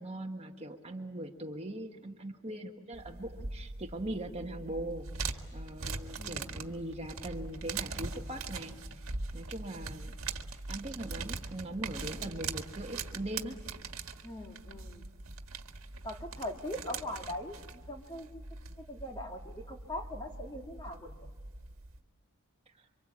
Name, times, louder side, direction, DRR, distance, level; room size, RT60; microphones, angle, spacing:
voice 1, 0.0-9.0 9.3-10.1 10.7-13.6 22.7-22.9, right 1 dB, 30° right, 3 dB, 1.4 m, -41 dB
sound 1, 2.9-22.0, right 4 dB, 75° right, 1.8 m, -42 dB
voice 2, 6.2-6.6 12.2-12.5 14.2-15.1 16.0-18.4 18.8-21.3, left 1 dB, 20° left, 2 dB, 2.4 m, -41 dB
28.5 x 25.0 x 8.5 m, 1.4 s
head